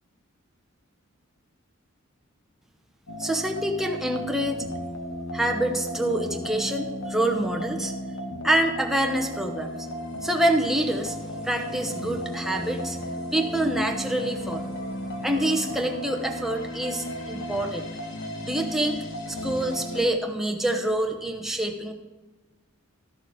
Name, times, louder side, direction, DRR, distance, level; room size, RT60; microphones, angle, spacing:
sound 1, 3.1-20.1, left 1 dB, 60° left, 1.2 m, -34 dB
voice 1, 3.2-4.7 5.3-7.9 8.4-9.9 10.2-11.2 11.4-14.7 15.2-17.9 18.4-19.0 19.3-21.9, right 1 dB, ahead, 2 dB, 0.8 m, -26 dB
12.5 x 6.5 x 5.0 m, 1.1 s
head